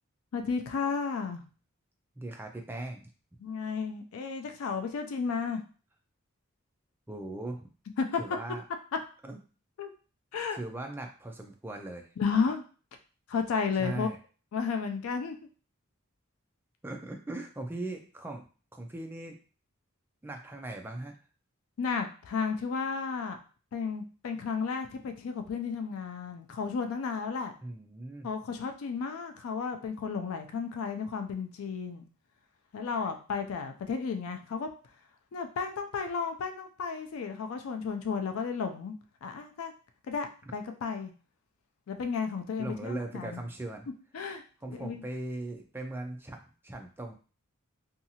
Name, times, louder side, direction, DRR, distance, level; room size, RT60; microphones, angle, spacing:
voice 1, 0.3-1.4 3.4-5.6 8.0-8.4 9.8-9.9 10.3-10.6 12.2-12.6 13.3-14.1 14.5-15.4 21.8-23.4 23.7-27.5 28.2-32.1 32.7-34.7 35.3-38.9 39.2-39.7 40.1-41.1 41.9-43.4 44.1-44.4 44.7-45.0, left 5 dB, 80° left, 6 dB, 0.4 m, -33 dB
voice 2, 2.2-3.1 7.1-7.7 8.2-8.6 9.2-9.4 10.5-12.1 13.8-14.2 16.8-19.4 20.2-21.1 27.6-28.3 42.6-43.9 44.6-47.1, right 2 dB, 10° right, 3 dB, 0.3 m, -39 dB
2.7 x 2.4 x 2.7 m, 0.37 s
head